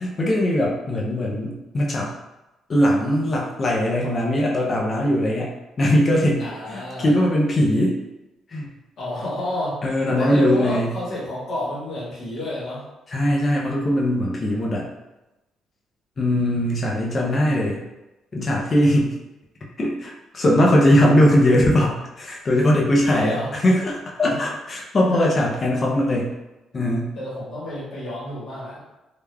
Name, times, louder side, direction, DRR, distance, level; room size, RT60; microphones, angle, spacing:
voice 1, 0.0-2.1 2.7-8.0 8.5-8.7 9.8-10.9 13.1-14.9 16.2-17.8 18.3-19.2 19.8-26.4 26.7-27.1, left 1 dB, 30° left, -3 dB, 0.5 m, -20 dB
voice 2, 6.4-7.1 9.0-9.8 10.1-12.8 23.0-23.5 24.2-24.4 25.0-25.3 27.1-28.8, left 1 dB, 55° left, -8 dB, 1.3 m, -29 dB
3.3 x 2.3 x 2.2 m, 1.0 s
cardioid pair, 145°, 0 cm